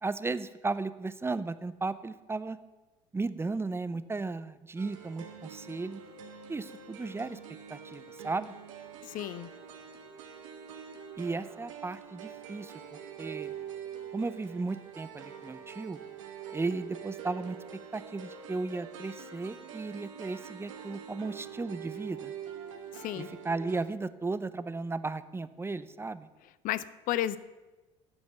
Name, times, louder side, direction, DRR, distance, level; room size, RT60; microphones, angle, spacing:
voice 1, 0.0-2.6 3.1-6.0 6.5-7.4 7.7-8.5 11.2-13.5 14.1-16.0 16.5-17.6 17.9-22.3 23.1-26.3, right 3 dB, 15° right, 14 dB, 0.6 m, -35 dB
sound 1, 4.8-23.8, right 7 dB, 85° right, 1.1 m, -45 dB
voice 2, 9.1-9.5 23.0-23.3 26.6-27.4, left 13 dB, 55° left, 17 dB, 0.6 m, -32 dB
9.8 x 5.2 x 8.0 m, 1.1 s
hypercardioid pair, 70°, 16 cm